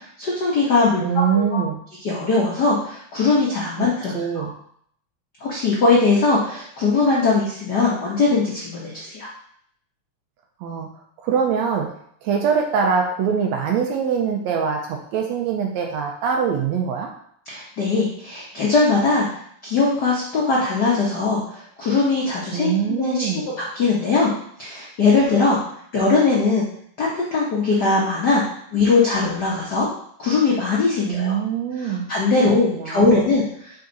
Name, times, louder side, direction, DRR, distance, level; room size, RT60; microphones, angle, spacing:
voice 1, 0.2-1.6 2.0-4.5 5.4-9.3 17.5-19.3 19.6-23.3 23.6-24.3 24.6-25.6 25.9-26.7 27.0-28.4 28.7-29.9 30.2-31.4 31.8-33.4, left 3 dB, 90° left, -5 dB, 0.9 m, -20 dB
voice 2, 1.0-1.8 3.8-3.9 4.1-4.5 10.6-10.9 11.2-11.9 12.2-17.1 22.5-23.5 31.1-32.1 32.4-33.3, right 7 dB, 75° right, 1 dB, 1.7 m, -23 dB
5.3 x 4.9 x 4.0 m, 0.65 s
omnidirectional pair, 3.6 m